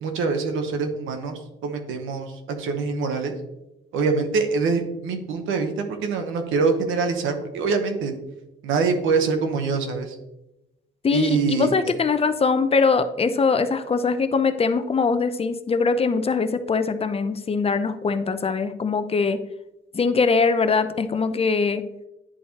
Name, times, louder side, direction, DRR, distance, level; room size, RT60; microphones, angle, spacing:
voice 1, 0.0-2.3 2.6-3.3 3.9-8.2 8.6-10.2 11.1-11.8, right 4 dB, 85° right, 6 dB, 1.0 m, -24 dB
voice 2, 11.0-19.4 19.9-21.8, left 4 dB, 30° left, 11 dB, 0.5 m, -22 dB
10.0 x 4.2 x 2.8 m, 0.93 s
cardioid pair, 90°, 20 cm